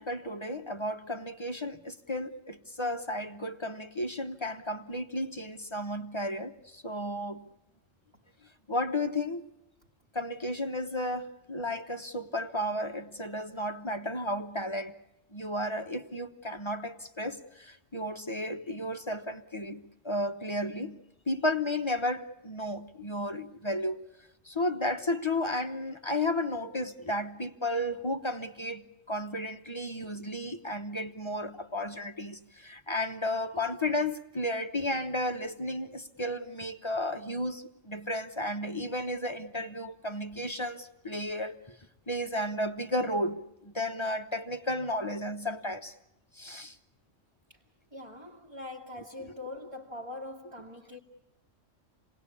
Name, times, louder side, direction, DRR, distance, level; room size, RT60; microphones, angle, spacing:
voice 1, 0.0-7.4 8.7-9.4 10.1-14.9 15.3-21.0 21.3-24.0 24.4-41.8 42.1-46.0 46.3-46.8 49.2-49.3, left 1 dB, 25° left, 0.9 m, -33 dB
voice 2, 47.9-51.0, left 2 dB, 25° right, 2.0 m, -42 dB
28.0 x 19.5 x 8.4 m
omnidirectional pair, 1.3 m